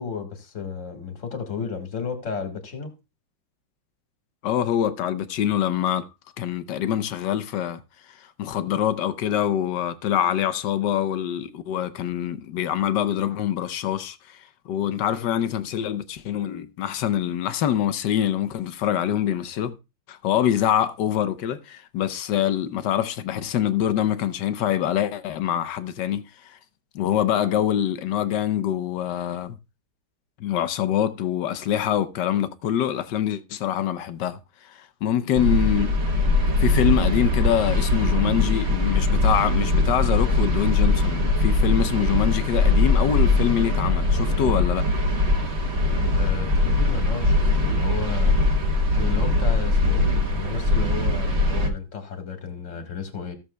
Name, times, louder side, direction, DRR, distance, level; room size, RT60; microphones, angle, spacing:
voice 1, 0.0-2.9 46.1-48.4 48.9-53.3, left 6 dB, 40° left, 2.0 m, -33 dB
voice 2, 4.4-6.1 6.4-7.8 8.1-19.7 20.1-26.6 26.9-29.6 30.4-36.0 36.6-44.9, left 10 dB, 70° left, 1.2 m, -25 dB
sound 1, 35.4-51.7, left 2 dB, 35° right, 1.5 m, -21 dB
15.5 x 7.2 x 2.2 m
omnidirectional pair, 2.3 m